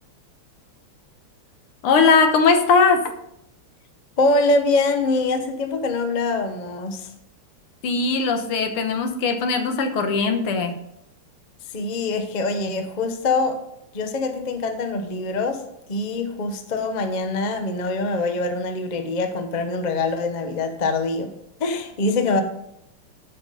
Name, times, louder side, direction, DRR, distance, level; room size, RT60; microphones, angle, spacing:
voice 1, 1.8-3.1 7.8-10.8, left 4 dB, 80° left, 6 dB, 2.0 m, -19 dB
voice 2, 4.2-7.1 11.7-13.6 13.9-15.6 15.9-21.3 21.6-22.4, left 3 dB, 40° left, 7 dB, 0.6 m, -24 dB
12.0 x 5.8 x 5.5 m, 0.77 s
omnidirectional pair, 2.4 m